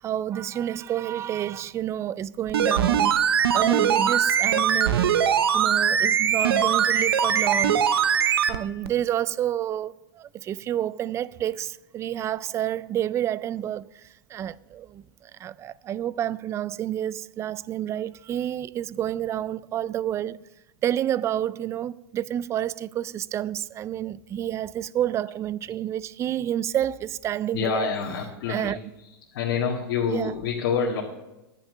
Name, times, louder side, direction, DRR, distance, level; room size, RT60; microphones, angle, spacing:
voice 1, 0.0-3.1 3.5-5.2 5.5-8.1 8.5-20.4 20.8-27.9 28.5-28.8 30.1-30.3, right 11 dB, 25° right, 0.3 m, -29 dB
sound 1, 2.5-8.6 8.9-9.0, right 8 dB, 85° right, 0.8 m, -21 dB
voice 2, 27.5-28.8 29.3-31.0, left 6 dB, 65° left, 1.8 m, -27 dB
10.5 x 9.0 x 6.4 m
hypercardioid pair, 125°, 12 cm